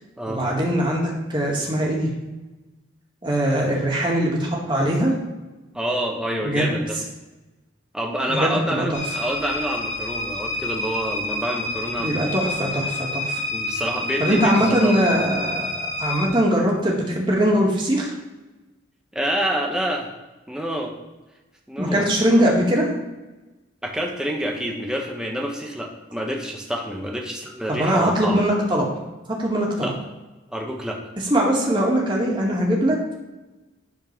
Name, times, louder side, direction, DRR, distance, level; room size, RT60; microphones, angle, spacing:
voice 1, 0.3-2.1 3.2-5.1 6.4-6.7 8.3-9.0 12.0-13.4 14.2-18.1 21.8-22.9 27.7-28.9 29.3-29.9 31.3-33.0, equal, 25° right, -2 dB, 2.2 m, -21 dB
voice 2, 5.7-7.0 7.9-12.6 13.5-15.0 19.1-20.1 20.5-20.9 21.7-22.1 23.8-28.4 29.8-30.0 30.5-31.0, equal, 5° right, 0 dB, 1.3 m, -27 dB
sound 1, 8.9-16.3, left 1 dB, 80° left, 3.5 m, -29 dB
11.0 x 4.5 x 6.1 m, 1.1 s
head